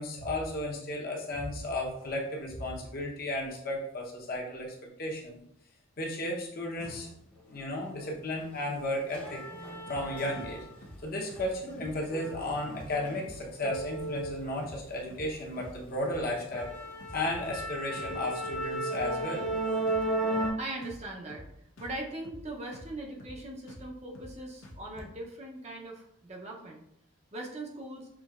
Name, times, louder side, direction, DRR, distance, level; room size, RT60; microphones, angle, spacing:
voice 1, 0.0-5.4 6.0-7.1 7.5-9.4 9.9-10.7 11.0-16.7 17.1-19.5, left 1 dB, 45° left, -1 dB, 0.8 m, -34 dB
sound 1, 8.0-8.1 8.5-10.9 11.2-15.0 15.4-15.7 16.1-16.2 16.5-20.5, right 1 dB, 5° left, 0.6 m, -35 dB
sound 2, 9.9-10.1 10.3-10.6 10.8-11.0 11.3-11.5 11.8-12.0 12.2-12.5 12.7-12.9 13.2-13.4 13.7-13.9 14.2-14.4 14.6-14.8 15.1-15.3 15.6-15.8 16.1-16.3 16.5-16.7 17.0-17.7 18.0-18.2 18.4-18.7 18.9-19.1 19.4-19.6 19.9-20.1 20.3-20.6 20.8-21.0 21.3-21.5 21.8-22.0 22.2-22.5 22.7-22.9 23.2-23.4 23.7-23.9 24.1-24.4 24.6-24.8, left 1 dB, 75° left, 0.8 m, -48 dB
voice 2, 20.3-21.4 21.8-26.8 27.3-28.1, right 2 dB, 30° right, 0 dB, 0.6 m, -40 dB
6.0 x 2.7 x 2.4 m, 0.74 s
head